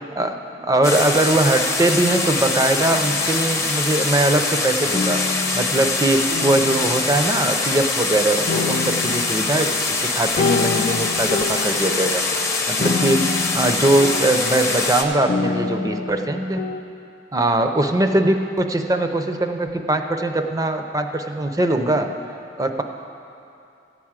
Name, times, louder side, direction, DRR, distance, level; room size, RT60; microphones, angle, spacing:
voice 1, 0.2-5.2 5.5-12.2 12.7-16.6 17.3-22.1 22.6-22.8, right 1 dB, 20° right, 6 dB, 0.5 m, -21 dB
sound 1, 0.8-15.0, left 3 dB, 15° left, 0.7 m, -23 dB
sound 2, 2.9-4.1 4.9-8.1 8.5-16.8, left 4 dB, 55° left, 0.4 m, -28 dB
14.0 x 4.8 x 8.9 m, 2.7 s
head